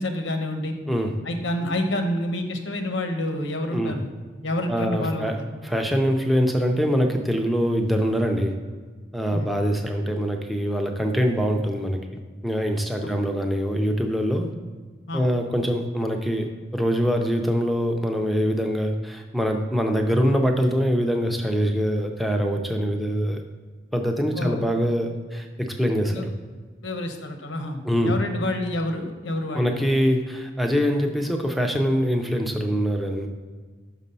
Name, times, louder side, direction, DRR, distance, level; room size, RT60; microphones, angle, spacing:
voice 1, 0.0-0.7 1.2-4.1 4.4-5.5 9.3-9.5 13.0-13.1 15.1-15.2 24.4-24.6 26.1-26.2 26.8-29.7, left 1 dB, 90° left, 5 dB, 0.9 m, -28 dB
voice 2, 4.7-5.4 5.6-8.6 9.1-14.5 15.1-23.4 23.9-26.3 27.8-28.2 29.5-33.3, equal, ahead, 3 dB, 0.5 m, -24 dB
6.0 x 4.1 x 5.4 m, 1.5 s
head